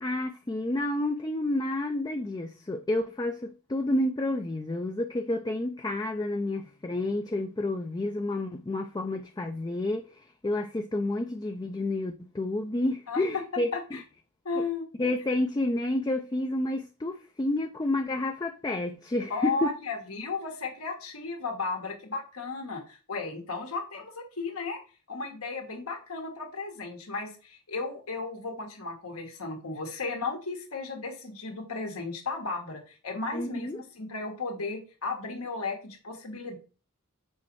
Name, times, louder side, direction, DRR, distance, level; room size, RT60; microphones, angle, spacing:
voice 1, 0.0-10.1 10.4-14.0 15.0-19.7 33.3-33.8, left 1 dB, 20° left, 0.4 m, -30 dB
voice 2, 14.5-14.8 19.3-24.8 25.1-36.6, left 4 dB, 80° left, 1.8 m, -35 dB
6.4 x 4.2 x 4.6 m
head